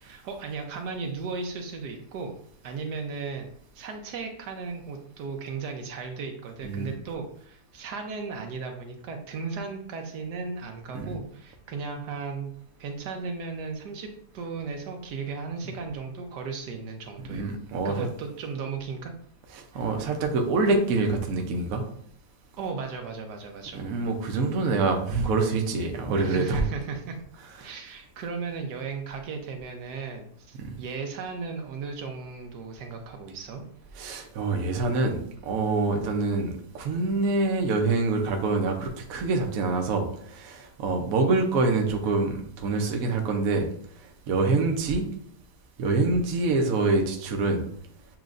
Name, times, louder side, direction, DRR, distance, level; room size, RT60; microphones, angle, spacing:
voice 1, 0.0-2.3 2.6-3.5 3.7-12.5 12.8-17.5 17.8-19.1 19.7-19.8 22.6-23.9 26.2-27.2 27.6-33.6, right 4 dB, 80° right, 4 dB, 1.3 m, -36 dB
voice 2, 17.3-18.1 19.5-21.8 23.7-26.6 27.6-27.7 30.6-30.7 33.9-43.7 44.0-45.0 45.8-47.6, right 3 dB, 65° right, 3 dB, 1.1 m, -26 dB
7.3 x 3.0 x 2.5 m, 0.63 s
omnidirectional pair, 1.8 m